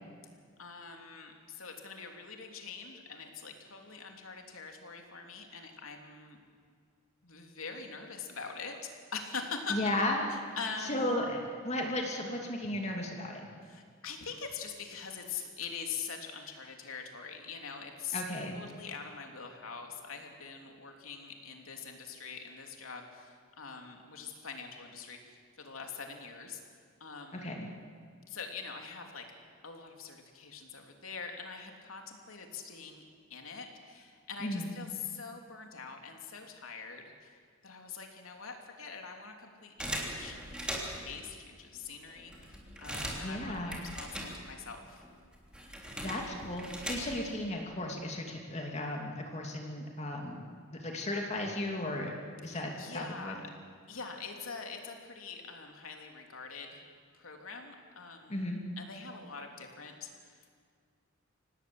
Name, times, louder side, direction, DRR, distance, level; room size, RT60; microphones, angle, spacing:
voice 1, 0.6-6.4 7.2-8.8 9.1-9.8 10.3-11.2 13.6-18.2 18.5-26.6 27.0-27.7 28.3-29.2 29.6-33.0 33.3-40.5 40.9-45.0 46.1-46.4 52.5-53.5 53.9-56.8 57.1-60.5, left 5 dB, 85° left, 3 dB, 3.3 m, -44 dB
voice 2, 9.7-10.2 10.8-13.5 18.1-18.6 27.3-27.7 34.4-34.7 43.2-43.8 46.0-50.4 50.7-52.2 52.4-53.4 58.3-58.6, left 1 dB, 30° left, 1 dB, 2.7 m, -35 dB
sound 1, 39.8-41.2 41.8-41.9 42.1-44.8 45.0-47.4, equal, 5° right, 3.4 m, -40 dB
26.0 x 18.5 x 8.0 m, 2.1 s
head